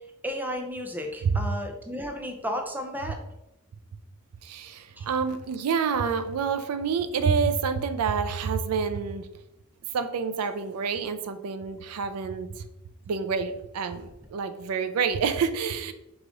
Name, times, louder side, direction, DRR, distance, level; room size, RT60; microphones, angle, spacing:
voice 1, 0.2-3.2 5.0-5.1, equal, 10° right, 3 dB, 0.4 m, -33 dB
voice 2, 4.4-9.2 9.9-12.5 13.1-15.9, right 6 dB, 85° right, 10 dB, 0.4 m, -28 dB
4.9 x 2.4 x 3.7 m, 0.89 s
head